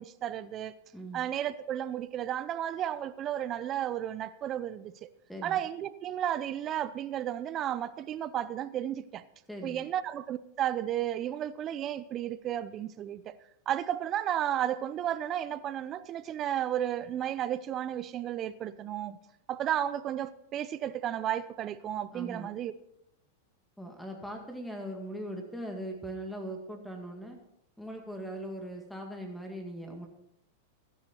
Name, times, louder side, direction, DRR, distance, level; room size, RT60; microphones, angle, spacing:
voice 1, 0.0-0.7 1.1-5.1 5.4-9.2 9.6-13.3 13.7-19.2 19.5-22.7, right 11 dB, 35° right, 0.7 m, -33 dB
voice 2, 0.9-1.2 5.3-5.6 9.5-9.8 22.1-22.5 23.8-27.4 27.8-30.1, right 1 dB, ahead, 2.1 m, -40 dB
15.0 x 10.5 x 4.5 m
hypercardioid pair, 115°, 0 cm